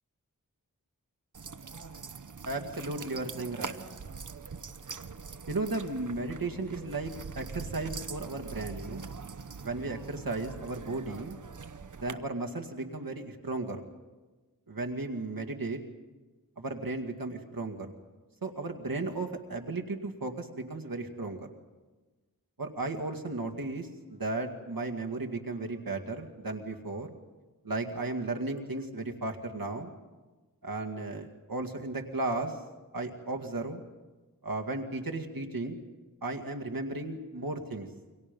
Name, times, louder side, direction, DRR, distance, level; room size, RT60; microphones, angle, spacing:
sound 1, 1.3-12.1, right 5 dB, 60° right, 0.9 m, -43 dB
voice 1, 2.5-3.8 5.5-9.1 9.6-11.4 12.0-13.8 14.7-15.8 16.6-17.9 18.4-21.5 22.6-27.1 27.6-29.9 30.6-32.6 32.9-33.8 34.4-35.8 36.2-37.9, right 2 dB, 80° right, 2 dB, 2.2 m, -35 dB
29.0 x 24.5 x 5.4 m, 1.3 s
wide cardioid pair, 60°, 34 cm